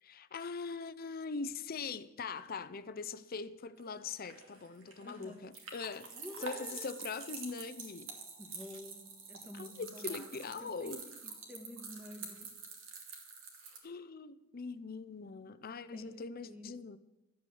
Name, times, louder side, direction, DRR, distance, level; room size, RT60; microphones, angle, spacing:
voice 1, 0.0-6.1 6.4-8.2 9.5-11.1 13.8-17.0, left 4 dB, 50° left, 0.6 m, -42 dB
sound 1, 3.8-13.8, right 5 dB, 85° right, 2.5 m, -47 dB
voice 2, 5.0-5.4 6.1-6.9 8.4-12.5 15.9-16.8, left 1 dB, 10° right, 1.8 m, -50 dB
13.0 x 8.2 x 7.1 m
head